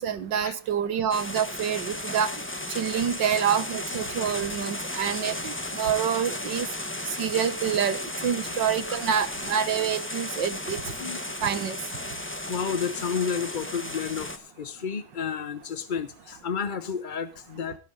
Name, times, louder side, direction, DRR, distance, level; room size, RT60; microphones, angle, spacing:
voice 1, 0.0-2.3 2.8-6.7 7.2-10.8 11.4-11.8, right 8 dB, 70° right, 2.0 m, -27 dB
sound 1, 1.1-14.4, left 1 dB, 5° left, 1.2 m, -34 dB
voice 2, 12.2-17.8, left 6 dB, 45° left, 0.6 m, -31 dB
17.5 x 6.1 x 6.4 m
omnidirectional pair, 2.0 m